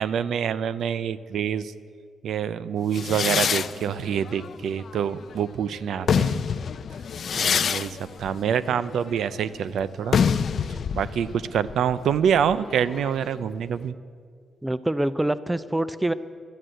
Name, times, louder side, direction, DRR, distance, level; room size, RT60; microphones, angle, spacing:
voice 1, 0.0-1.7 2.2-6.4 7.4-10.2 10.9-13.9, right 8 dB, 75° right, 16 dB, 0.4 m, -26 dB
sound 1, 2.9-5.4 5.9-13.4, left 7 dB, 55° left, 0.4 m, -27 dB
voice 2, 14.6-16.1, right 1 dB, 10° right, 15 dB, 0.4 m, -25 dB
12.5 x 10.0 x 7.7 m, 2.1 s
cardioid pair, 115°, 0 cm